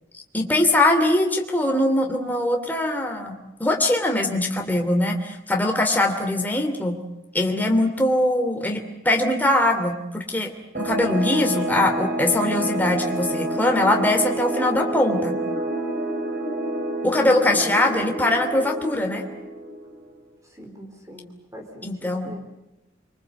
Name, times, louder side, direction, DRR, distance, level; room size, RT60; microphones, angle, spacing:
voice 1, 0.3-7.0 7.3-15.4 17.0-19.2 21.8-22.5, left 1 dB, 10° left, 3 dB, 2.8 m, -22 dB
sound 1, 10.7-20.1, right 1 dB, 50° right, 5.3 m, -28 dB
voice 2, 17.2-17.8 20.5-22.4, equal, 15° right, 3 dB, 4.0 m, -42 dB
25.5 x 24.5 x 8.3 m, 0.97 s
head